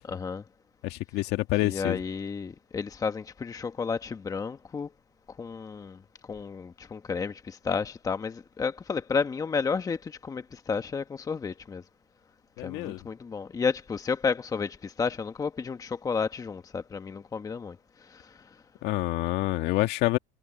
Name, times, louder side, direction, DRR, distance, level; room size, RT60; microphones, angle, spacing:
voice 1, 0.0-0.4 1.6-4.9 5.3-6.0 6.3-11.8 12.6-18.5, left 5 dB, 15° left, 1.3 m, -32 dB
voice 2, 0.8-2.0 12.6-13.0 18.8-20.2, left 18 dB, 55° left, 2.0 m, -27 dB
supercardioid pair, 135°, 20 cm